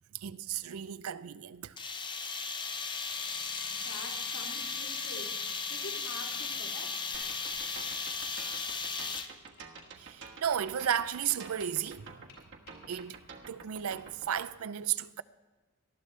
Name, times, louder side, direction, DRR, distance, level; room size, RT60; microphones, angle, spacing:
voice 1, 0.1-1.7 10.0-12.1 12.9-13.2 13.5-15.2, right 9 dB, 75° right, 0.5 m, -34 dB
sound 1, 1.8-9.5, left 5 dB, 20° left, 0.7 m, -36 dB
Tap, 2.6-3.7 4.1-4.7 5.5-5.6 6.3-6.6 7.1-7.8 8.4-8.9 9.6-9.9 10.2-12.0 12.3-13.0, left 4 dB, 65° left, 4.7 m, -57 dB
voice 2, 3.7-5.3 5.7-6.9, left 2 dB, 85° left, 2.8 m, -46 dB
sound 2, 7.1-14.4, right 5 dB, 60° right, 1.3 m, -49 dB
19.0 x 13.0 x 3.3 m
head